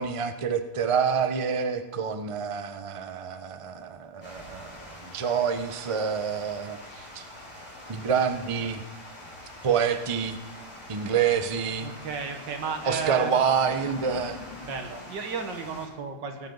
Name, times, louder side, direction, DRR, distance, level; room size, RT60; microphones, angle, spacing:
voice 1, 0.0-7.3 7.9-8.8 9.6-10.4 10.9-11.9 12.8-14.4, right 7 dB, 35° right, 8 dB, 0.5 m, -27 dB
Water, 4.2-15.9, left 1 dB, 25° left, 5.5 m, -44 dB
voice 2, 11.8-13.3 14.6-16.5, right 5 dB, 85° right, 5 dB, 2.1 m, -33 dB
19.0 x 12.0 x 4.0 m, 1.1 s
omnidirectional pair, 1.9 m